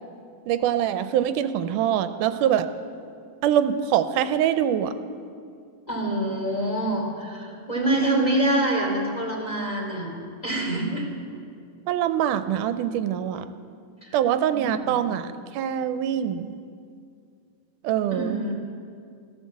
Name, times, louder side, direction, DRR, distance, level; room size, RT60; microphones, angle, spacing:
voice 1, 0.5-2.7 3.4-4.9 8.0-8.3 11.9-13.5 14.1-15.3 15.5-16.6 17.8-18.4, right 10 dB, 90° right, 10 dB, 2.1 m, -24 dB
voice 2, 5.9-10.1 10.4-11.1 14.0-14.2 14.6-15.0 18.1-18.5, right 1 dB, 15° left, -1 dB, 2.6 m, -26 dB
16.0 x 12.0 x 7.4 m, 2.3 s
omnidirectional pair, 3.6 m